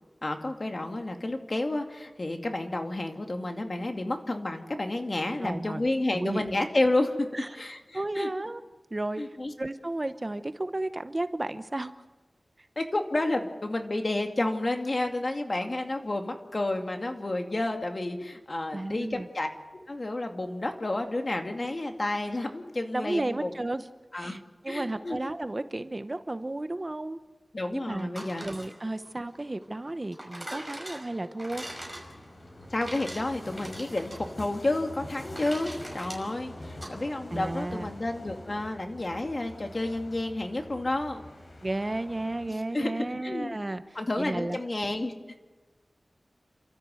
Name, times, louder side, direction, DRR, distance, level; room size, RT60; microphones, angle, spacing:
voice 1, 0.2-7.3 7.5-8.3 9.2-9.5 12.8-19.5 19.9-23.5 24.1-24.4 24.7-25.2 27.5-28.5 32.7-41.2 42.5-43.5 44.0-45.1, left 2 dB, 45° left, 4 dB, 2.3 m, -30 dB
voice 2, 5.4-5.9 6.1-6.5 7.3-7.5 7.9-8.6 8.9-9.2 9.6-11.9 12.6-12.7 18.7-19.3 21.6-21.8 22.9-23.9 24.1-27.2 27.7-28.1 28.4-31.7 37.3-37.9 41.6-43.8 44.2-44.6, right 2 dB, 30° right, 11 dB, 0.8 m, -33 dB
sound 1, 28.0-36.9, right 1 dB, 5° right, 5.5 m, -43 dB
sound 2, 31.5-42.5, left 1 dB, 65° left, 4.9 m, -45 dB
29.5 x 13.5 x 7.8 m, 1.3 s
wide cardioid pair, 80°, 0 cm